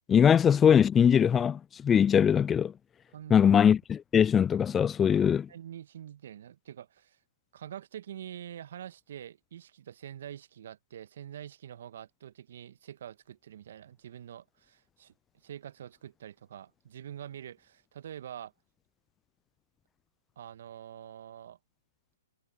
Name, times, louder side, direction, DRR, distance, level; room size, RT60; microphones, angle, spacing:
voice 1, 0.1-2.7 3.3-5.5, left 8 dB, 15° left, 0.4 m, -22 dB
voice 2, 3.1-3.5 5.2-7.2 7.5-15.1 15.4-18.5 20.4-21.6, right 10 dB, 60° right, 1.6 m, -45 dB
hypercardioid pair, 125°, 0 cm